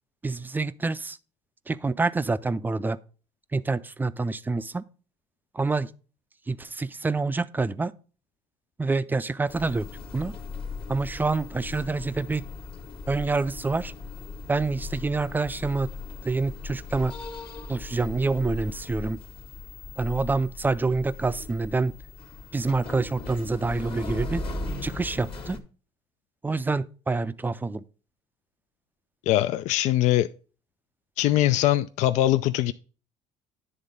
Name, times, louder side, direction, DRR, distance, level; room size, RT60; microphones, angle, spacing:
voice 1, 0.2-1.2 1.7-3.0 3.5-4.8 5.5-5.9 6.5-7.9 8.8-9.9 10.1-10.3 10.9-12.4 13.1-13.9 14.5-15.9 16.2-17.2 17.7-19.2 20.0-22.0 22.5-24.4 24.8-25.6 26.4-27.8, right 3 dB, 15° right, 0.4 m, -27 dB
sound 1, 9.5-25.6, left 3 dB, 40° left, 1.4 m, -38 dB
voice 2, 29.3-30.3 31.2-32.7, left 14 dB, 60° left, 0.4 m, -22 dB
10.0 x 3.6 x 5.3 m
supercardioid pair, 95°, 14 cm